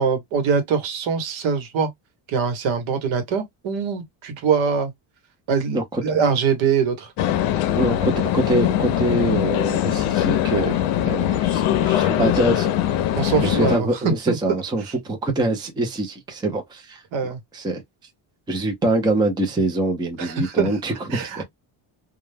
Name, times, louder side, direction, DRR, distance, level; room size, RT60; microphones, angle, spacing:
voice 1, 0.0-1.9 2.3-4.9 5.5-7.1 13.2-13.9 14.3-14.4 17.1-17.4 20.2-20.7 21.1-21.4, right 6 dB, 75° right, 1.1 m, -23 dB
sound 1, 7.2-13.8, left 12 dB, 90° left, 0.6 m, -21 dB
voice 2, 7.7-12.7 13.4-17.0 17.5-17.8 18.5-21.4, right 2 dB, 10° right, 0.5 m, -24 dB
2.3 x 2.1 x 3.2 m
cardioid pair, 150°, 47 cm